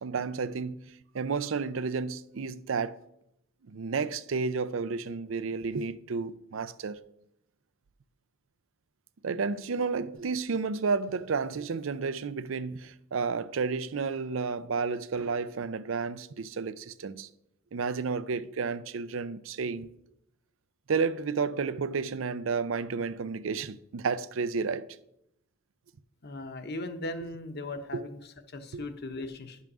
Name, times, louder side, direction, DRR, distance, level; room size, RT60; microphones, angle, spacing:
voice 1, 0.0-0.8 1.1-3.0 3.7-7.0 9.2-17.3 17.7-19.9 20.9-24.9 27.9-28.0 28.7-28.8, right 5 dB, 75° right, 0.5 m, -31 dB
voice 2, 26.2-28.2 28.5-29.6, left 2 dB, 55° left, 1.0 m, -38 dB
10.5 x 5.6 x 6.1 m
head